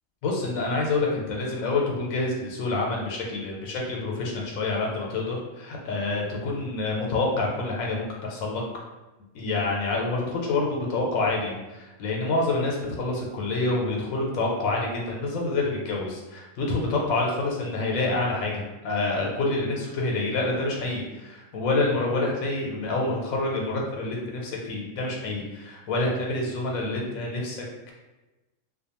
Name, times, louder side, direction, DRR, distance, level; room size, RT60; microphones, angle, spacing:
voice 1, 0.2-8.6 9.3-27.9, left 2 dB, 85° left, -1 dB, 1.0 m, -27 dB
2.4 x 2.2 x 2.8 m, 1.1 s
omnidirectional pair, 1.4 m